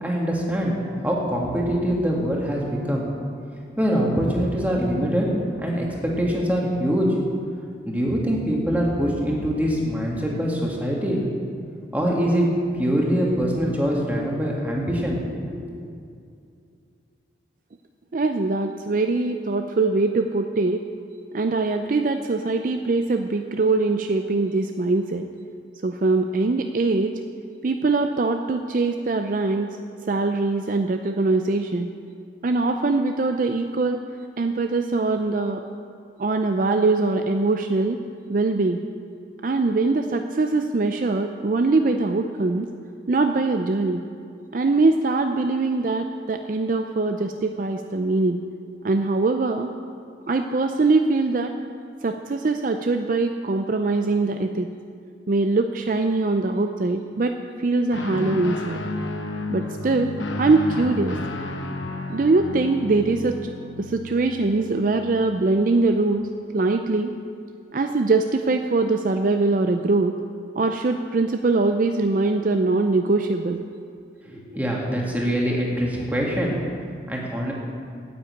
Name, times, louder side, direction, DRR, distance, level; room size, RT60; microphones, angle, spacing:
voice 1, 0.0-3.0 3.8-5.3 5.6-7.1 7.9-11.2 11.9-12.5 12.8-15.2 15.5-15.6 74.2-76.5 77.1-77.5, equal, 10° right, -3 dB, 1.8 m, -24 dB
voice 2, 18.1-20.8 21.3-25.3 25.8-27.1 27.6-29.7 30.1-31.9 32.4-34.0 34.4-35.6 36.2-38.0 38.3-38.8 39.4-42.7 43.1-44.0 44.5-48.4 48.8-49.7 50.3-51.5 52.0-54.7 55.3-57.3 57.6-58.8 59.5-61.2 62.1-63.4 63.8-66.3 66.5-67.1 67.7-70.2 70.6-73.6, right 3 dB, 45° right, 6 dB, 0.4 m, -22 dB
Guitar, 57.9-65.6, left 2 dB, 90° left, 1.0 m, -32 dB
9.6 x 8.5 x 8.3 m, 2.4 s
head